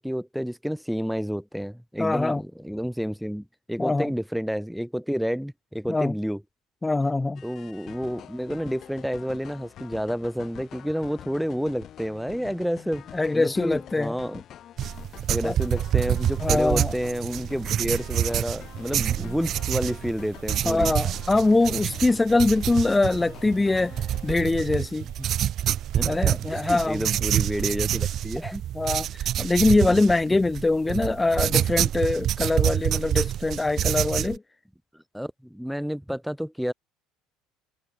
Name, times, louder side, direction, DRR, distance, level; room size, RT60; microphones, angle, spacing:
voice 1, 0.0-6.4 7.4-14.4 15.3-20.9 25.2-25.3 25.9-28.6 29.9-30.0 34.9-36.7, equal, ahead, 1.8 m, -30 dB
voice 2, 2.0-2.4 3.8-4.1 5.9-6.1 6.8-7.4 13.1-14.1 15.4-15.6 16.4-16.9 19.2-19.3 20.6-24.0 24.2-25.1 26.0-27.1 28.4-34.4, left 2 dB, 15° left, 0.5 m, -23 dB
sound 1, 7.4-24.4, left 11 dB, 50° left, 5.4 m, -45 dB
sound 2, 14.8-34.4, right 11 dB, 50° right, 0.9 m, -27 dB
sound 3, 18.0-28.4, right 32 dB, 75° right, 6.9 m, -56 dB
hypercardioid pair, 75°, 0 cm